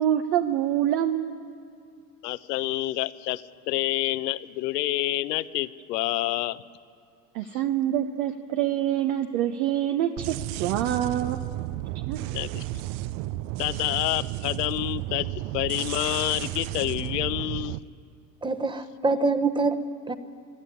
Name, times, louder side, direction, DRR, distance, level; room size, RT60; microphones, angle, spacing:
voice 1, 0.0-1.5 7.3-10.3 10.6-11.4 11.9-12.2, right 11 dB, 60° right, 7 dB, 1.1 m, -26 dB
voice 2, 2.2-6.6 7.5-7.6 12.3-12.6 13.6-17.8, left 17 dB, 75° left, 15 dB, 0.9 m, -28 dB
sound 1, 10.2-17.8, right 16 dB, 45° right, 0.5 m, -33 dB
voice 3, 18.4-20.1, right 3 dB, 10° right, 9 dB, 1.0 m, -25 dB
24.5 x 12.5 x 9.9 m, 2.3 s
hypercardioid pair, 105°, 49 cm